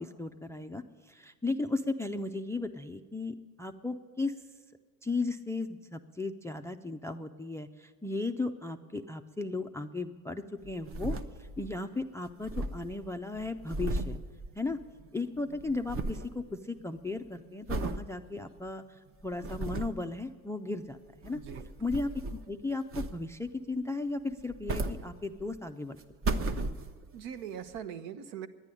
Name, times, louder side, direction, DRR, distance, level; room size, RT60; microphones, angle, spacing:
voice 1, 0.0-4.3 5.0-14.2 14.6-14.8 15.1-21.4 21.8-22.1 22.5-26.0, left 3 dB, 5° left, 8 dB, 0.3 m, -36 dB
sound 1, 10.6-11.8 12.0-12.1 12.3-15.1 15.3-16.3 16.8-17.1 17.7-18.0 18.6-18.7 19.2-20.1 21.1-22.5 22.9-23.5 24.3-25.6 26.0-27.2 27.8-27.9, right 2 dB, 30° right, 0.8 m, -35 dB
voice 2, 21.3-21.6 27.1-28.5, right 8 dB, 70° right, 11 dB, 1.0 m, -41 dB
10.5 x 9.9 x 9.9 m, 1.6 s
hypercardioid pair, 80°, 44 cm